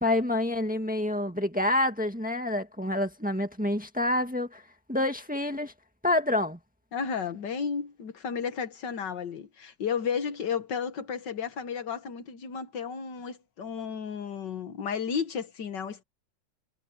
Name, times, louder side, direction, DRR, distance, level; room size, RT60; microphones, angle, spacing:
voice 1, 0.0-4.6 4.9-5.7 6.0-6.6, left 1 dB, 5° right, 1.7 m, -27 dB
voice 2, 6.9-16.0, left 6 dB, 70° left, 2.0 m, -33 dB
omnidirectional pair, 2.0 m